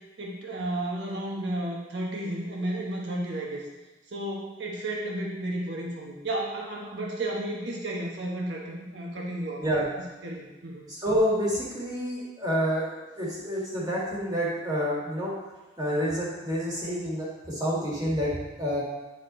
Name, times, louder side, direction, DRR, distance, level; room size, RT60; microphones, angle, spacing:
voice 1, 0.2-3.6 4.1-9.8 10.2-10.8, right 1 dB, 70° right, -2 dB, 1.2 m, -33 dB
voice 2, 10.9-12.9 13.2-15.3 15.8-18.8, equal, 20° right, -6 dB, 2.0 m, -28 dB
9.6 x 4.2 x 3.9 m, 1.2 s
head